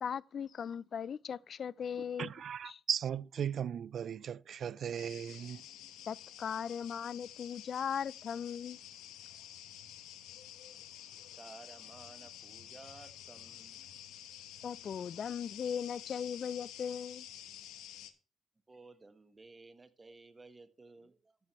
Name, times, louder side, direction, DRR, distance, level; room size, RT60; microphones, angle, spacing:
voice 1, 0.0-2.3 2.7-2.8 6.1-8.8 14.6-17.3, left 7 dB, 50° left, 0.3 m, -38 dB
voice 2, 2.2-5.6, right 8 dB, 55° right, 0.3 m, -37 dB
sound 1, 5.0-18.1, left 11 dB, 85° left, 1.2 m, -50 dB
voice 3, 11.4-13.9 18.7-21.4, right 3 dB, 20° right, 1.3 m, -55 dB
13.5 x 6.2 x 3.1 m
cardioid pair, 100°, 0 cm